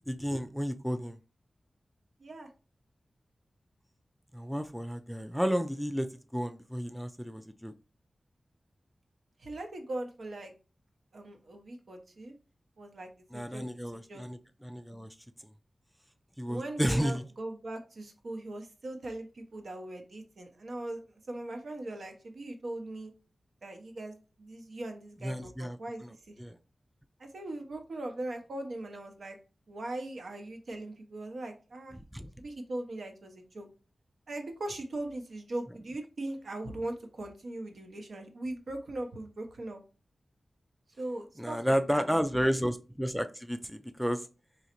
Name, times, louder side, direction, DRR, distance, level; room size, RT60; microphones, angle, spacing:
voice 1, 0.1-1.2 4.3-6.1 6.3-7.7 13.3-15.1 16.4-17.2 25.2-25.8 26.0-26.1 26.4-26.6 32.0-32.3 41.4-44.3, equal, ahead, 8 dB, 0.3 m, -32 dB
voice 2, 9.4-10.5 11.1-12.3 12.8-13.6 13.9-14.2 16.5-21.0 21.3-23.1 23.6-26.3 27.2-29.4 29.7-32.0 32.4-33.7 34.3-39.8 41.0-42.2, right 1 dB, 70° right, 4 dB, 0.8 m, -40 dB
3.8 x 3.1 x 2.9 m, 0.33 s
wide cardioid pair, 100°, 0 cm